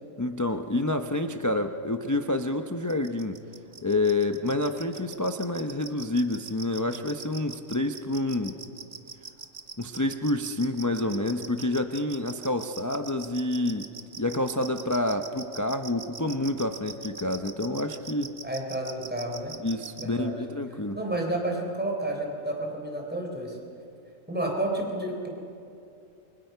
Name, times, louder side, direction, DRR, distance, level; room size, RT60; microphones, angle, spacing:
voice 1, 0.2-3.4 3.8-8.6 9.8-18.4 19.6-21.0, left 2 dB, 15° left, 6 dB, 0.7 m, -28 dB
sound 1, 2.9-20.0, right 5 dB, 40° right, 1.3 m, -41 dB
voice 2, 18.4-19.6 20.0-20.3 20.9-23.6 24.3-25.3, right 1 dB, 5° right, 1 dB, 3.7 m, -30 dB
28.5 x 24.5 x 5.8 m, 2.6 s
omnidirectional pair, 1.4 m